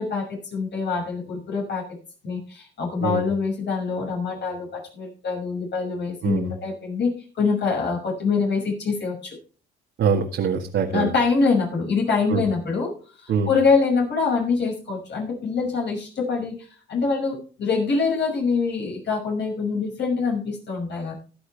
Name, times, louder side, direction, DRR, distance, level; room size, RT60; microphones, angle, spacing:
voice 1, 0.0-1.8 2.2-9.4 10.9-12.9 13.2-21.1, left 4 dB, 60° left, -1 dB, 6.1 m, -25 dB
voice 2, 10.0-11.1 12.3-12.4 13.3-13.5, right 6 dB, 70° right, 1 dB, 1.8 m, -23 dB
15.5 x 11.0 x 3.4 m, 0.39 s
cardioid pair, 90°, 20 cm